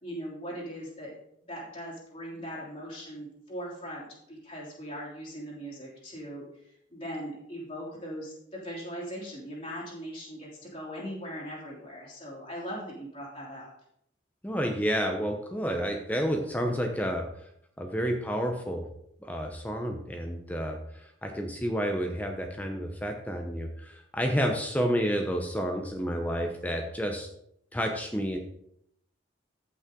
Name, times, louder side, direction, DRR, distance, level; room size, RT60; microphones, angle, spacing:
voice 1, 0.0-1.2 1.5-6.5 6.9-13.7, equal, 30° left, -6 dB, 3.1 m, -40 dB
voice 2, 14.4-17.3 17.8-18.8 19.2-27.3 27.7-28.4, equal, 10° left, 3 dB, 0.7 m, -30 dB
14.5 x 5.6 x 3.7 m, 0.74 s
head